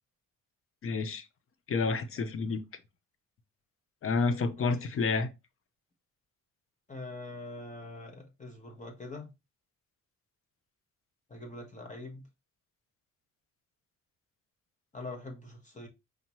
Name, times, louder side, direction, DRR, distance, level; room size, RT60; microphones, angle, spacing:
voice 1, 0.8-1.2 1.7-2.6 4.0-5.3, left 4 dB, 45° left, 0.7 m, -29 dB
voice 2, 4.5-4.9 6.9-9.3 11.3-12.2 14.9-15.9, left 2 dB, 25° left, 1.0 m, -43 dB
5.0 x 2.8 x 3.0 m
cardioid pair, 90°, 30 cm